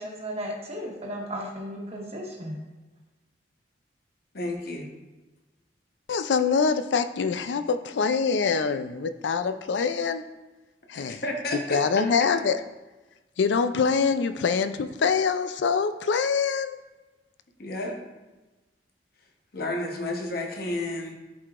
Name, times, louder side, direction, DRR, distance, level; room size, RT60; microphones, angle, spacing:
voice 1, 0.0-2.6, equal, 35° right, -1 dB, 1.3 m, -35 dB
voice 2, 4.3-4.9 10.9-11.8 12.2-12.3 17.6-18.0 19.5-21.1, left 2 dB, 55° left, 2 dB, 1.0 m, -31 dB
voice 3, 6.1-10.2 10.9-11.2 11.5-12.6 13.4-16.8, left 5 dB, 80° left, 11 dB, 0.4 m, -25 dB
11.0 x 4.7 x 2.5 m, 1.1 s
head